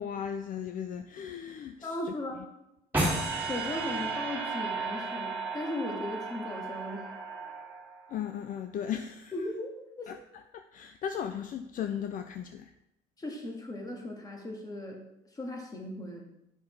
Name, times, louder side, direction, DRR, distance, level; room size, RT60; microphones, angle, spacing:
voice 1, 0.0-2.1 8.1-9.3 10.1-10.2 10.5-12.7, left 8 dB, 55° left, 8 dB, 0.5 m, -36 dB
voice 2, 1.8-2.4 3.4-7.0 9.3-10.1 13.2-15.0 15.4-16.2, left 1 dB, 20° left, 1 dB, 1.8 m, -37 dB
sound 1, 2.9-8.1, right 3 dB, 10° right, 2.4 m, -34 dB
9.5 x 5.4 x 3.4 m, 0.87 s
cardioid pair, 110°, 17 cm